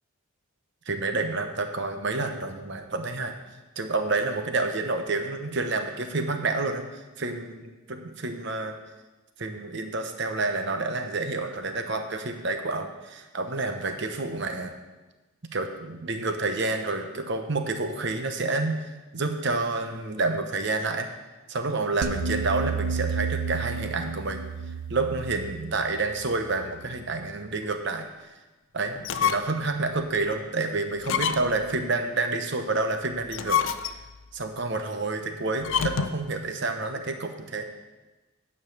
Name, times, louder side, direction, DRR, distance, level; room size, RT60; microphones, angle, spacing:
voice 1, 0.9-3.3 3.8-8.7 9.4-14.7 15.5-21.1 21.5-24.4 24.9-28.3 28.7-34.0 34.3-37.7, right 3 dB, 55° right, 6 dB, 0.9 m, -29 dB
sound 1, 22.0-27.2, right 5 dB, 85° right, 0.5 m, -32 dB
sound 2, 28.9-29.7 30.1-30.2 31.0-31.7 33.2-34.2 35.6-36.3, left 7 dB, 60° left, 0.4 m, -27 dB
9.4 x 5.5 x 6.5 m, 1.1 s
head